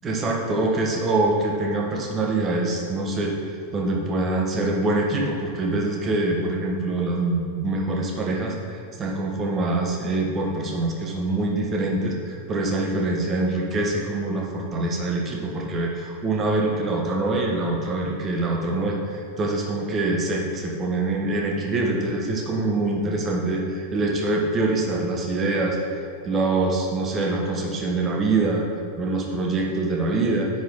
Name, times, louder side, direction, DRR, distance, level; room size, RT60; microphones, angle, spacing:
voice 1, 0.0-28.6 29.0-30.5, right 2 dB, 25° right, 0 dB, 1.3 m, -24 dB
9.9 x 5.0 x 4.0 m, 2.2 s
figure-of-eight pair, 90°, 0 cm